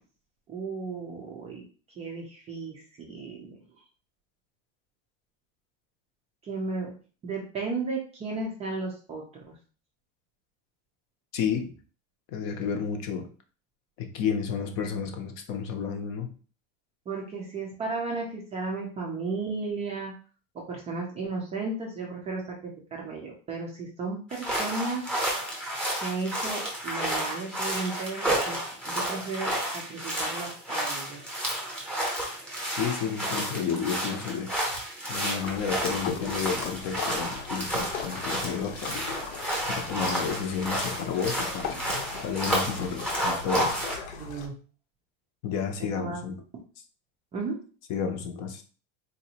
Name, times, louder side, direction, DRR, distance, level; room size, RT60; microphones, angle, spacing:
voice 1, 0.5-1.6 2.0-3.6 6.4-6.9 7.2-9.5 17.1-20.1 20.5-25.0 26.0-28.6 28.8-31.2 38.8-39.0 44.2-44.5 46.0-46.2 47.3-47.6, right 3 dB, 20° right, -2 dB, 0.3 m, -34 dB
voice 2, 11.3-11.7 12.3-13.3 14.0-16.3 32.8-34.5 35.1-39.0 39.7-41.7 42.2-43.8 45.4-46.4 47.9-48.6, left 6 dB, 45° left, 5 dB, 0.6 m, -31 dB
sound 1, 24.3-44.0, right 1 dB, 5° left, 0.7 m, -31 dB
Kayaking in calm weather, 35.4-44.5, left 6 dB, 75° left, 0.9 m, -38 dB
3.9 x 2.5 x 2.8 m, 0.39 s
cardioid pair, 165°, 39 cm